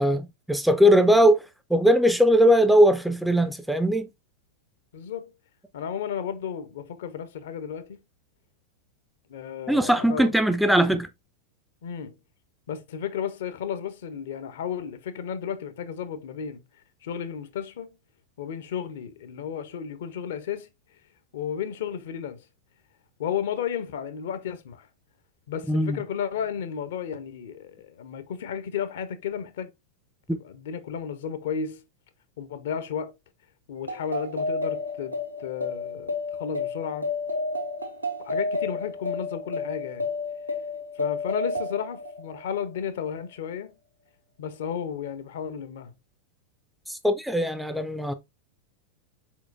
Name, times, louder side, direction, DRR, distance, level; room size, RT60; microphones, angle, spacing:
voice 1, 0.0-1.4 1.7-4.1 9.7-11.1 25.7-26.0 46.9-48.1, equal, ahead, 0.4 m, -20 dB
voice 2, 4.9-5.3 5.7-8.0 9.3-10.4 11.8-12.2 12.7-16.6 17.0-18.0 18.4-20.7 21.3-22.4 23.2-24.9 25.5-29.7 30.4-31.8 32.4-33.1 33.7-37.1 38.2-40.1 41.0-43.8 44.4-45.9, left 8 dB, 60° left, 0.6 m, -33 dB
sound 1, 33.8-42.8, left 3 dB, 90° right, 1.0 m, -31 dB
4.5 x 4.3 x 2.5 m
figure-of-eight pair, 90°, 0 cm